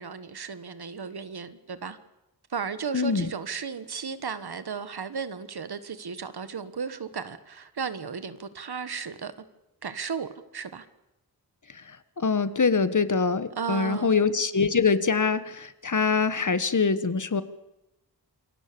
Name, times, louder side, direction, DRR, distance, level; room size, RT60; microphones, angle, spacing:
voice 1, 0.0-2.0 2.5-9.3 9.8-10.9 13.6-14.2, right 6 dB, 75° right, 1.5 m, -34 dB
voice 2, 2.9-3.3 11.7-11.8 12.2-17.4, left 5 dB, 50° left, 1.4 m, -24 dB
27.5 x 22.5 x 6.9 m
wide cardioid pair, 85°, 39 cm